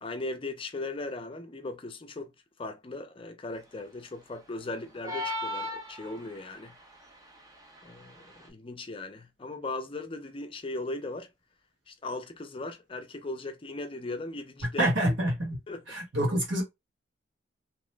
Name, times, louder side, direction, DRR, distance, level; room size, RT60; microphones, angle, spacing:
voice 1, 0.0-2.3 2.6-6.7 7.8-11.3 11.9-15.1 15.7-15.8, left 2 dB, 30° left, 0.5 m, -38 dB
sound 1, 5.0-6.5, left 2 dB, 20° right, 0.7 m, -34 dB
voice 2, 14.8-15.6 15.9-16.6, right 1 dB, 70° right, 1.5 m, -26 dB
2.9 x 2.1 x 3.2 m
head